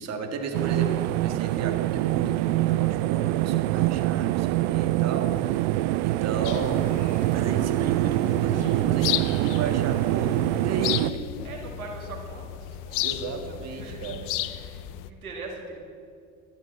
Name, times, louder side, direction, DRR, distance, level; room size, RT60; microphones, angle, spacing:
voice 1, 0.0-5.7 6.0-7.0 7.3-11.2 13.0-14.3, right 4 dB, 40° right, 3 dB, 1.8 m, -34 dB
sound 1, 0.5-11.1, right 17 dB, 55° right, 0.5 m, -25 dB
sound 2, 6.4-15.1, left 14 dB, 50° left, 0.7 m, -34 dB
voice 2, 11.4-15.8, right 3 dB, 90° right, 0 dB, 2.1 m, -42 dB
12.5 x 8.9 x 7.7 m, 2.4 s
hypercardioid pair, 75°, 42 cm